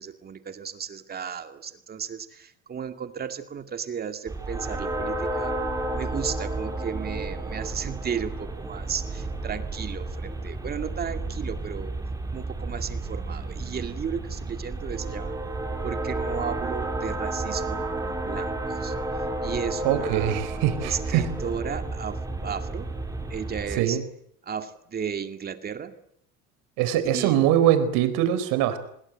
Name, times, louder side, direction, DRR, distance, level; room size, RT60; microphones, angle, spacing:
voice 1, 0.0-5.6 5.9-11.9 12.3-15.4 15.8-18.9 19.4-20.4 20.8-22.9 23.3-24.0 24.4-26.0 27.1-27.5, right 7 dB, 30° right, 8 dB, 2.4 m, -34 dB
sound 1, 4.3-23.8, right 2 dB, 10° right, 4.3 m, -32 dB
voice 2, 19.8-21.3 23.8-24.0 26.8-28.8, right 11 dB, 80° right, 11 dB, 4.6 m, -22 dB
27.5 x 20.5 x 9.1 m, 0.70 s
cardioid pair, 140°, 32 cm